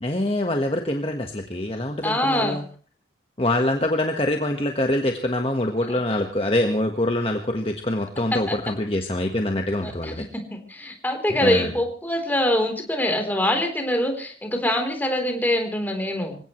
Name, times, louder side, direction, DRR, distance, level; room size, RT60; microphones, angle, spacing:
voice 1, 0.0-2.6 3.4-10.2 11.4-11.7, left 1 dB, 30° left, 4 dB, 1.4 m, -24 dB
voice 2, 2.0-2.6 8.3-8.6 9.8-16.4, left 1 dB, 10° left, 4 dB, 3.7 m, -24 dB
26.5 x 17.0 x 3.2 m, 0.39 s
head